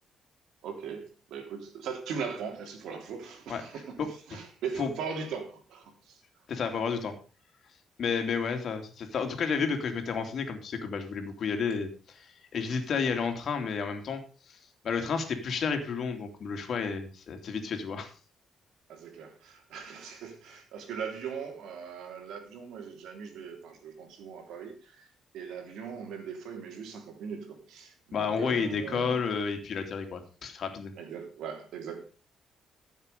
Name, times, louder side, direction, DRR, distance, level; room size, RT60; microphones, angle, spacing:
voice 1, 0.6-6.2 18.9-29.2 31.0-32.0, right 6 dB, 85° right, 5 dB, 3.3 m, -40 dB
voice 2, 6.5-7.1 8.0-14.2 14.5-18.1 28.1-30.9, left 5 dB, 55° left, 5 dB, 2.8 m, -31 dB
15.0 x 7.3 x 5.3 m, 0.36 s
cardioid pair, 110°, 0 cm